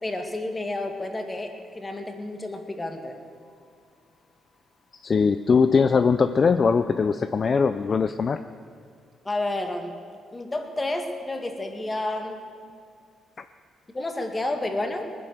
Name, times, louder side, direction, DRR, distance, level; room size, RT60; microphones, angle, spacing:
voice 1, 0.0-3.2 9.2-10.0 10.3-12.4 13.9-15.1, left 2 dB, 20° left, 4 dB, 2.1 m, -30 dB
voice 2, 5.0-8.4, left 5 dB, 45° left, 10 dB, 0.5 m, -21 dB
19.5 x 10.5 x 6.7 m, 2.2 s
cardioid pair, 75°, 0 cm